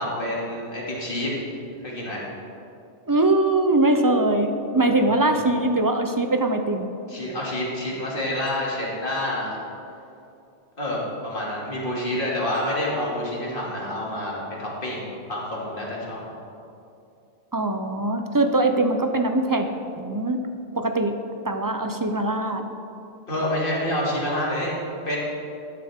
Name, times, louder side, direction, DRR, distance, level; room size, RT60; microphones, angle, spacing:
voice 1, 0.0-1.3 1.8-2.2 7.1-9.6 10.8-15.0 15.3-16.3 23.3-24.7 25.1-25.2, left 1 dB, 45° left, -5 dB, 2.7 m, -28 dB
voice 2, 3.1-6.9 17.5-19.7 20.0-20.4 20.8-21.1 21.4-22.6, right 2 dB, 30° right, 6 dB, 0.4 m, -22 dB
13.5 x 10.5 x 3.6 m, 2.7 s
omnidirectional pair, 1.2 m